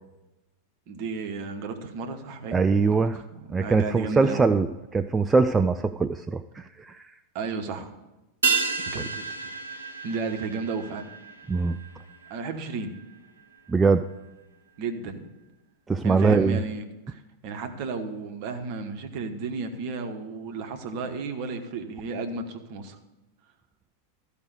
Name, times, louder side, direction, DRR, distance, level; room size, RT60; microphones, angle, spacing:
voice 1, 0.9-2.6 3.0-4.5 7.3-7.9 8.8-9.5 10.0-11.1 12.3-12.9 14.8-15.2 16.0-23.0, right 4 dB, 45° right, 6 dB, 1.1 m, -33 dB
voice 2, 2.5-3.2 3.5-7.1 11.5-11.8 13.7-14.1 15.9-16.6, right 4 dB, 15° right, 9 dB, 0.3 m, -22 dB
sound 1, 8.4-13.1 13.4-13.5, right 4 dB, 75° right, 0.9 m, -31 dB
13.0 x 5.1 x 6.8 m, 1.0 s
figure-of-eight pair, 90°, 0 cm